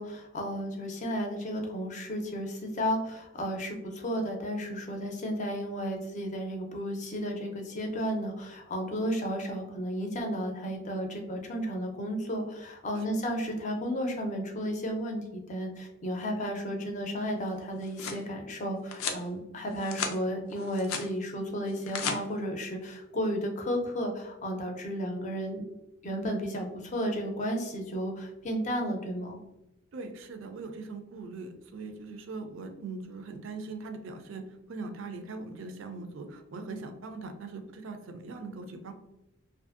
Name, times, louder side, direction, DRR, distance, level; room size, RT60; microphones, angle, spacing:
voice 1, 0.0-25.6 26.0-29.4, equal, 35° left, 2 dB, 0.5 m, -33 dB
sound 1, 17.6-18.2 18.9-19.2 19.7-20.2 20.5-21.1 21.7-22.2, left 5 dB, 90° left, 0.4 m, -35 dB
voice 2, 29.9-38.9, right 3 dB, 65° right, 6 dB, 0.4 m, -41 dB
2.6 x 2.5 x 2.4 m, 0.90 s
head